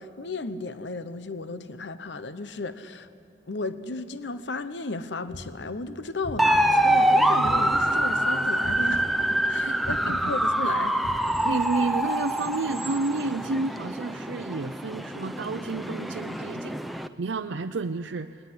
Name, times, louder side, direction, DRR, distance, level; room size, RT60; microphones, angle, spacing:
voice 1, 0.0-3.1 3.5-11.0, left 3 dB, 75° left, 12 dB, 0.9 m, -34 dB
sound 1, 5.3-8.2 8.6-11.9, left 1 dB, 50° left, 1.2 m, -41 dB
sound 2, 6.4-17.1, right 1 dB, ahead, 0.6 m, -25 dB
voice 2, 9.6-10.3 10.6-10.7 11.4-18.3, right 3 dB, 90° right, 6 dB, 0.6 m, -31 dB
20.5 x 19.5 x 9.7 m, 2.4 s
head